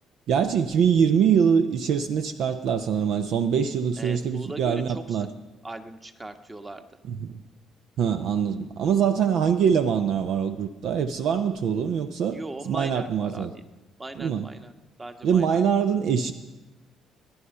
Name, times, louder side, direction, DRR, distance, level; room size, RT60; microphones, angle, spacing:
voice 1, 0.3-5.3 7.1-7.3 8.0-12.4 12.7-13.5 14.2-14.5 15.2-16.3, right 7 dB, 60° right, 9 dB, 0.6 m, -23 dB
voice 2, 4.0-5.3 5.6-6.9 12.3-13.6 14.0-14.7 15.0-15.6, right 2 dB, 20° right, 7 dB, 1.4 m, -39 dB
18.0 x 10.5 x 5.5 m, 1.1 s
hypercardioid pair, 50°, 0 cm